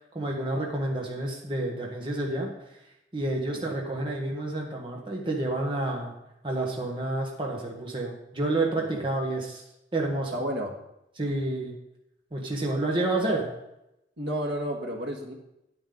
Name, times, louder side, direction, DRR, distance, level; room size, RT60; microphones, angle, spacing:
voice 1, 0.1-2.5 3.1-6.1 6.4-9.6 9.9-10.4 11.2-11.8 12.3-13.5, right 2 dB, 30° right, -1 dB, 1.4 m, -29 dB
voice 2, 10.3-10.7 14.2-15.3, equal, 75° right, 1 dB, 1.7 m, -32 dB
9.3 x 9.1 x 3.9 m, 0.86 s
head